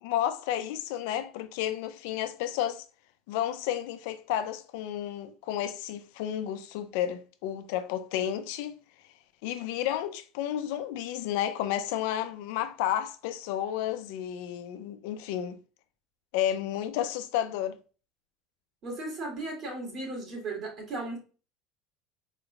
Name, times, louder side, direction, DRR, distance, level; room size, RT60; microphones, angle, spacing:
voice 1, 0.0-2.8 3.3-8.8 9.4-15.6 16.3-17.8, left 11 dB, 80° left, 0.5 m, -31 dB
voice 2, 18.8-21.2, right 2 dB, 40° right, 2.6 m, -36 dB
5.1 x 4.1 x 2.4 m
cardioid pair, 135°, 0 cm